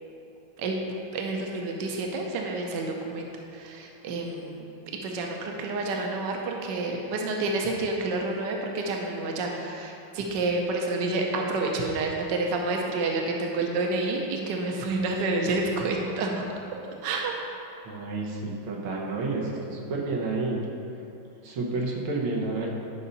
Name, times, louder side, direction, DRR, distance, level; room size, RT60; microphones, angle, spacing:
voice 1, 1.1-3.3 3.5-4.7 5.0-16.3 16.8-17.3, right 2 dB, 65° right, 1 dB, 1.4 m, -29 dB
voice 2, 17.9-20.7 21.4-22.7, right 3 dB, 85° right, -2 dB, 1.9 m, -30 dB
11.0 x 5.5 x 4.1 m, 2.7 s
omnidirectional pair, 2.2 m